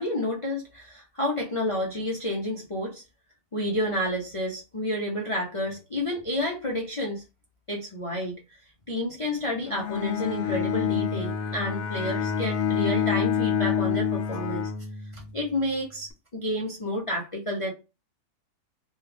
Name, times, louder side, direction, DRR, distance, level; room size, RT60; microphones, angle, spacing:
voice 1, 0.0-3.0 3.5-7.2 7.7-8.6 8.9-14.7 15.1-17.7, left 1 dB, 50° left, -2 dB, 0.3 m, -30 dB
Bowed string instrument, 9.7-15.5, left 8 dB, 85° left, 1.2 m, -27 dB
3.1 x 2.3 x 3.3 m, 0.28 s
omnidirectional pair, 1.7 m